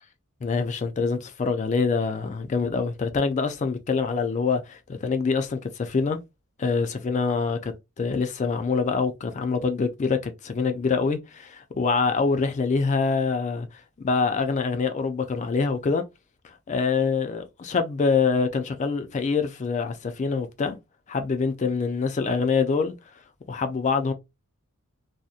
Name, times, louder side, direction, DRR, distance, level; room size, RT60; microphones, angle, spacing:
voice 1, 0.4-6.2 6.6-13.7 14.0-16.0 16.4-20.8 21.1-22.9 23.5-24.1, left 4 dB, 35° left, 0.3 m, -25 dB
2.7 x 2.1 x 2.3 m
head